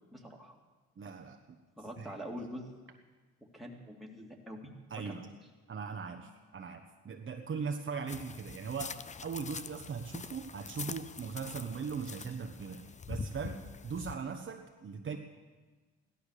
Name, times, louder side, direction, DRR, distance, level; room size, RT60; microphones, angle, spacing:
voice 1, 0.1-0.6 1.8-2.7 3.5-5.2, equal, ahead, -1 dB, 2.7 m, -45 dB
voice 2, 1.0-1.4 2.0-2.2 4.9-5.3 5.7-15.2, right 5 dB, 40° right, 3 dB, 1.2 m, -39 dB
sound 1, 8.1-14.1, left 5 dB, 25° left, 0.5 m, -44 dB
16.0 x 12.0 x 6.7 m, 1.3 s
cardioid pair, 90°, 30 cm